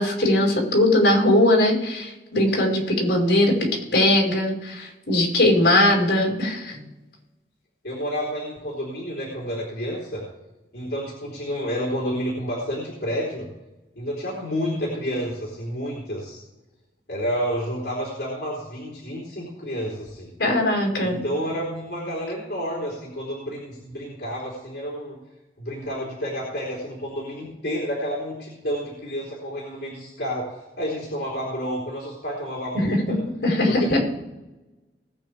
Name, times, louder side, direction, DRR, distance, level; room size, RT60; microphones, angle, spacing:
voice 1, 0.0-6.8 20.4-21.2 33.1-33.2 33.4-34.0, left 1 dB, 90° left, -1 dB, 5.2 m, -20 dB
voice 2, 7.8-10.2 10.7-13.4 14.0-16.4 17.1-20.3 21.0-25.2 25.6-33.2 33.7-34.0, equal, 70° left, -6 dB, 3.9 m, -30 dB
20.0 x 9.0 x 3.5 m, 1.0 s
head